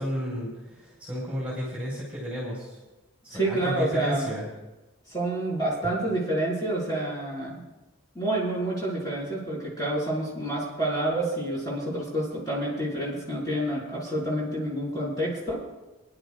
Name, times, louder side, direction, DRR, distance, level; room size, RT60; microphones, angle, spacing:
voice 1, 0.0-2.8 3.2-4.4, equal, 5° right, -5 dB, 4.2 m, -32 dB
voice 2, 3.3-4.3 5.1-7.6 8.2-15.6, right 1 dB, 20° left, -7 dB, 5.3 m, -28 dB
26.0 x 11.0 x 2.5 m, 1.1 s
head